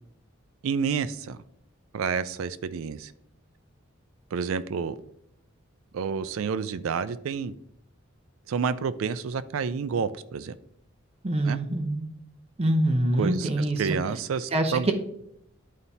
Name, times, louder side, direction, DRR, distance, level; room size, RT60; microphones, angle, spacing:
voice 1, 0.6-1.4 1.9-3.1 4.3-5.0 5.9-7.5 8.5-10.6 11.5-11.6 13.2-13.5 13.8-14.9, right 6 dB, 80° right, 0.4 m, -29 dB
voice 2, 11.2-12.1 12.6-14.0 14.5-14.9, right 1 dB, 30° right, 0.7 m, -25 dB
11.0 x 4.2 x 2.7 m
head